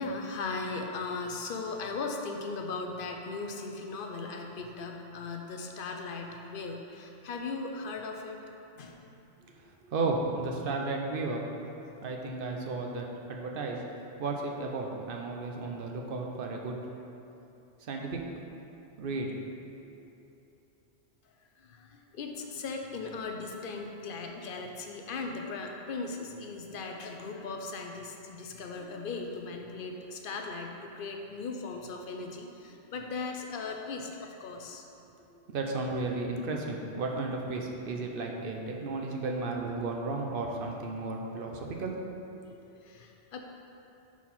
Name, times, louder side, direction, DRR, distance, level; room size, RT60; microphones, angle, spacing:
voice 1, 0.0-8.4 8.7-9.0 21.6-34.9 42.6-43.4, left 3 dB, 60° left, 2 dB, 0.7 m, -38 dB
voice 2, 9.9-11.4 12.0-13.8 14.2-16.8 17.9-18.2 19.0-19.3 35.5-41.9 42.5-42.6, right 3 dB, 60° right, 1 dB, 0.8 m, -33 dB
4.6 x 4.4 x 5.4 m, 2.9 s
omnidirectional pair, 1.2 m